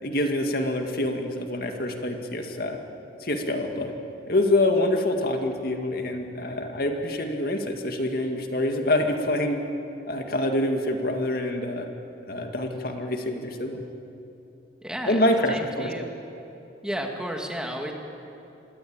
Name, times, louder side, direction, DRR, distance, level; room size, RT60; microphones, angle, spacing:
voice 1, 0.0-2.8 3.2-3.9 4.3-9.6 10.1-11.9 12.3-13.8 15.1-15.9, left 1 dB, 55° left, 4 dB, 2.2 m, -26 dB
voice 2, 14.8-15.2 15.5-16.1 16.8-17.9, equal, 5° right, 2 dB, 2.3 m, -32 dB
26.0 x 21.0 x 8.9 m, 2.9 s
head